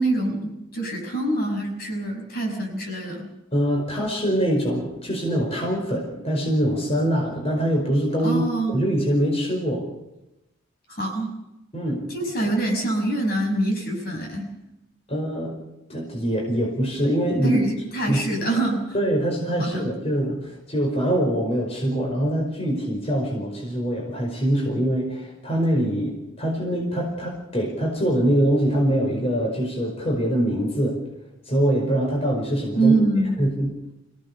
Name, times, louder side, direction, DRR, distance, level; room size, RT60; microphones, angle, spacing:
voice 1, 0.0-3.3 8.2-8.7 10.9-11.3 12.1-14.5 17.4-19.0 19.6-19.9 32.7-33.4, right 2 dB, 50° left, 1 dB, 6.0 m, -25 dB
voice 2, 3.5-8.4 8.7-9.9 11.7-12.0 15.1-15.6 15.9-17.6 18.1-18.2 18.9-31.0 31.4-32.9 33.4-33.7, equal, 30° left, -1 dB, 5.1 m, -23 dB
25.5 x 17.0 x 6.9 m, 0.94 s
head